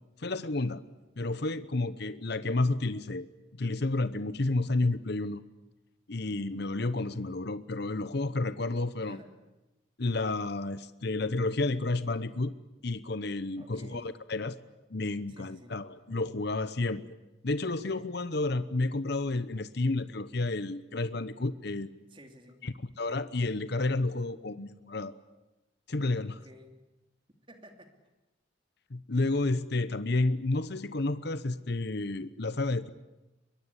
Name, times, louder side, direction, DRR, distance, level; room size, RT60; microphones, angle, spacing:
voice 1, 0.2-0.8 1.2-3.3 3.6-5.4 6.1-9.2 10.0-12.5 12.8-14.6 14.9-17.2 17.4-22.0 22.6-25.1 25.9-26.4 28.9-32.9, left 2 dB, 55° left, 14 dB, 0.9 m, -31 dB
voice 2, 9.0-9.3 13.5-14.2 15.3-15.7 17.8-18.1 22.1-22.6 26.2-26.8 27.5-27.9, equal, 25° right, 5 dB, 2.8 m, -52 dB
23.0 x 22.5 x 9.8 m, 1.0 s
head